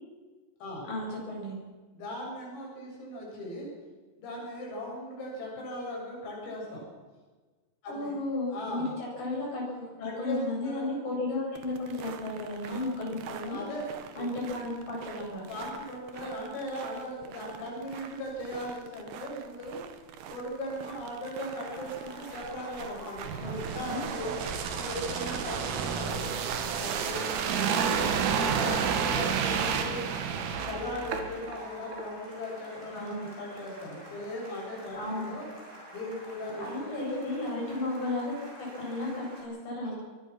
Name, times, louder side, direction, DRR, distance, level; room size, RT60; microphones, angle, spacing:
voice 1, 0.9-1.6 7.9-13.6 14.2-15.4 23.4-24.0 32.9-33.3 34.9-35.3 36.6-39.9, left 2 dB, 40° left, -3 dB, 9.3 m, -34 dB
voice 2, 1.9-3.7 4.2-6.8 7.8-8.1 8.5-8.9 9.7-10.9 12.6-13.0 13.5-14.4 15.3-19.8 20.3-24.4 24.8-26.4 26.7-27.9 28.2-30.1 30.4-35.5 35.9-37.2 39.8-39.9, left 1 dB, 90° left, -3 dB, 9.8 m, -38 dB
sound 1, 11.5-31.2, right 8 dB, 65° right, 2.9 m, -45 dB
sound 2, 21.5-39.4, equal, 15° right, 7.6 m, -48 dB
sound 3, 23.2-31.6 31.9-32.1, right 7 dB, 80° right, 4.6 m, -30 dB
23.5 x 21.5 x 6.3 m, 1.3 s
omnidirectional pair, 5.8 m